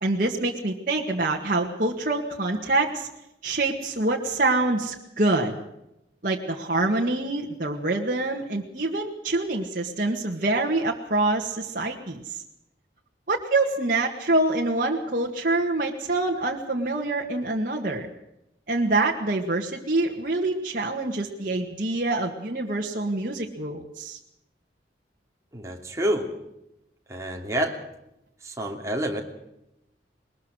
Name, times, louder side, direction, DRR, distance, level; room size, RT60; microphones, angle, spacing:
voice 1, 0.0-3.1 3.4-5.6 6.2-12.4 13.3-18.1 18.7-24.2, right 2 dB, 50° right, -1 dB, 1.9 m, -26 dB
voice 2, 25.5-26.3 27.1-27.8 28.4-29.2, right 1 dB, 15° right, 2 dB, 2.8 m, -28 dB
21.5 x 20.5 x 6.4 m, 0.86 s
head